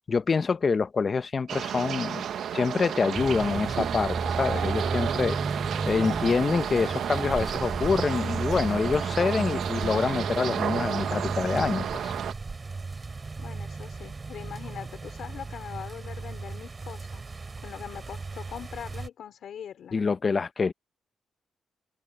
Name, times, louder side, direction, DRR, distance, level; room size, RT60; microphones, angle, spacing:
voice 1, 0.0-2.2 2.5-5.4 5.8-12.1 19.9-20.7, left 5 dB, 40° left, 0.8 m, -26 dB
sound 1, 1.5-12.3, right 9 dB, 75° right, 1.1 m, -32 dB
sound 2, 3.1-19.1, right 4 dB, 30° right, 4.4 m, -35 dB
voice 2, 13.4-17.2 17.6-20.0, left 9 dB, 70° left, 4.0 m, -42 dB
cardioid pair, 105°, 0 cm